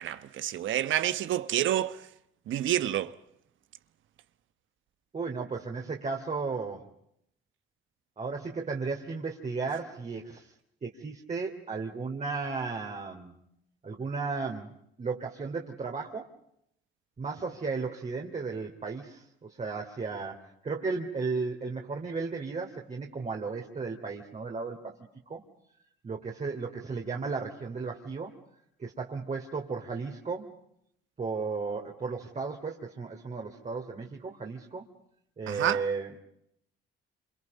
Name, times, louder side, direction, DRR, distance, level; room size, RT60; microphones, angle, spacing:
voice 1, 0.0-2.0 2.5-3.2 35.5-35.8, right 12 dB, 75° right, 1.1 m, -28 dB
voice 2, 5.1-6.9 8.2-10.5 10.8-13.3 13.8-14.7 15.0-16.3 17.2-25.0 25.3-25.4 26.0-28.3 28.8-30.5 31.2-34.9 35.4-36.2, right 4 dB, 35° right, 3.0 m, -34 dB
28.0 x 27.5 x 5.4 m
cardioid pair, 90°, 20 cm